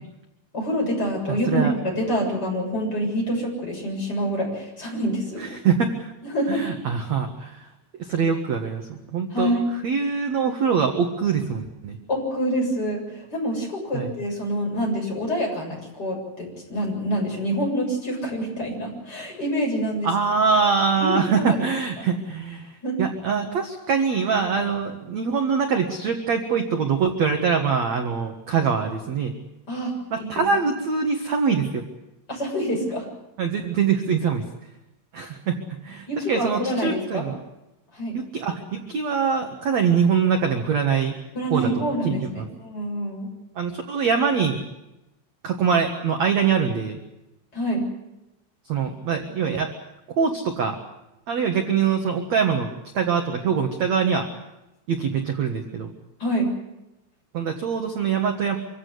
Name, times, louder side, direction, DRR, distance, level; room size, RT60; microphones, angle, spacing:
voice 1, 0.5-5.4 6.2-6.6 9.3-9.7 12.1-20.1 21.0-21.6 22.8-23.0 29.7-30.4 32.3-33.1 36.1-37.2 37.9-38.2 41.3-43.3 47.5-47.8 56.2-56.5, equal, 20° left, -1 dB, 7.6 m, -26 dB
voice 2, 1.3-1.7 5.4-6.1 6.5-7.7 8.0-9.5 9.8-12.0 13.9-14.1 20.0-29.3 30.1-31.8 33.4-34.5 35.1-37.3 38.1-41.2 41.5-42.5 43.6-44.6 45.4-47.0 48.7-49.7 50.1-50.8 51.3-54.3 54.9-55.9 57.3-58.6, right 6 dB, 60° right, 4 dB, 1.9 m, -24 dB
26.0 x 16.0 x 9.6 m, 0.94 s
omnidirectional pair, 5.4 m